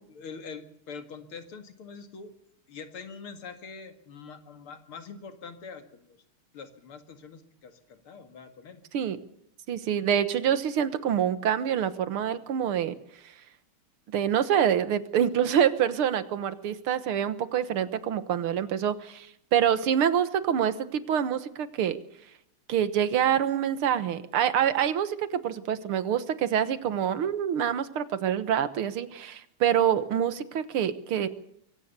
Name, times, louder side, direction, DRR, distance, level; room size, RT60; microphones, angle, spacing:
voice 1, 0.1-2.3 2.7-5.8 6.5-8.8 15.4-15.5, left 5 dB, 80° left, 8 dB, 2.9 m, -44 dB
voice 2, 9.7-13.0 14.1-22.0 22.7-31.3, right 9 dB, 80° right, 14 dB, 2.1 m, -26 dB
23.5 x 17.0 x 6.8 m, 0.72 s
omnidirectional pair, 2.3 m